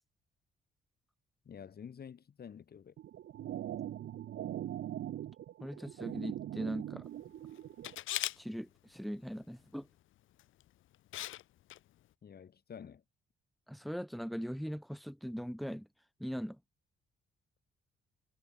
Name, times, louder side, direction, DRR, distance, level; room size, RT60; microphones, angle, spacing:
voice 1, 1.4-2.9 12.2-13.0, left 7 dB, 50° left, 7.7 m, -49 dB
sound 1, 3.0-8.0, right 12 dB, 70° right, 3.1 m, -41 dB
voice 2, 5.6-7.0 8.4-9.9 13.7-15.9 16.2-16.6, equal, ahead, 4.6 m, -40 dB
Camera, 7.8-8.4 10.4-10.6 11.1-11.4 11.7-11.8, left 14 dB, 85° left, 3.5 m, -37 dB
cardioid pair, 90°, 20 cm